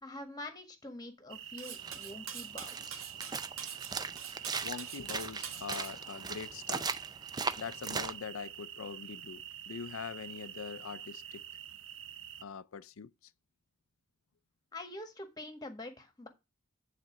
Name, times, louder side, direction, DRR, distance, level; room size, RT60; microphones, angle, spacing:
voice 1, 0.0-3.1 14.7-16.3, left 1 dB, 20° left, 1.6 m, -45 dB
sound 1, 1.3-12.4, right 10 dB, 65° right, 0.7 m, -47 dB
Cutlery silverware, 1.6-5.9, right 8 dB, 85° right, 1.4 m, -45 dB
sound 2, 1.8-8.1, right 5 dB, 20° right, 0.5 m, -39 dB
voice 2, 4.6-6.9 7.6-11.4 12.4-13.3, left 6 dB, 80° left, 0.5 m, -43 dB
9.3 x 4.1 x 5.9 m
head